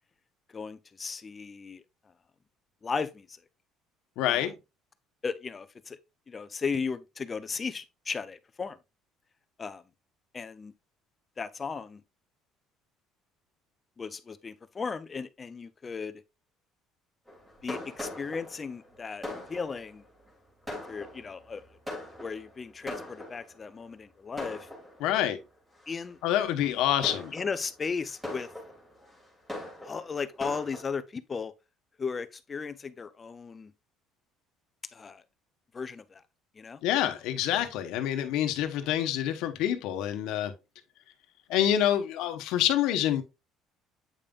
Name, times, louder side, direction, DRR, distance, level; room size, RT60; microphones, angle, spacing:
voice 1, 0.5-1.8 2.8-3.3 4.3-4.5 5.2-6.0 6.3-8.8 9.6-9.8 10.3-10.7 11.4-12.0 14.0-16.2 17.6-20.0 20.9-21.6 22.2-24.7 25.9-26.2 27.3-28.5 29.8-31.5 32.0-33.7 34.9-35.2 35.7-36.2 36.6-36.8, left 5 dB, 20° left, 0.5 m, -36 dB
voice 2, 4.2-4.5 25.0-25.4 26.2-27.3 36.8-40.5 41.5-43.2, left 11 dB, 75° left, 1.0 m, -27 dB
Fireworks, 17.3-23.7 24.4-25.3 25.8-26.1 26.7-30.8, left 1 dB, 10° right, 2.1 m, -41 dB
8.4 x 5.3 x 2.4 m
cardioid pair, 160°, 0 cm